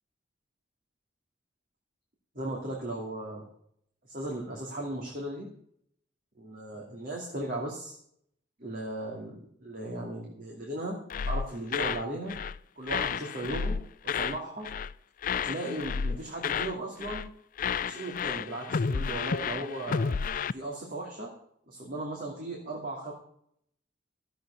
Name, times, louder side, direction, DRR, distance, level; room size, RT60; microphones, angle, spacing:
voice 1, 2.3-3.5 4.1-5.5 6.4-8.0 8.6-11.0 11.2-12.4 12.8-14.7 15.3-17.3 17.8-20.2 20.5-21.3 21.7-23.1, right 1 dB, 50° right, -2 dB, 2.6 m, -36 dB
sound 1, 11.1-12.0 12.3-12.6 12.9-14.4 14.6-14.9 15.2-16.8 17.0-17.3 17.6-20.5, left 6 dB, 50° left, 0.4 m, -31 dB
13.5 x 7.8 x 6.9 m, 0.69 s
head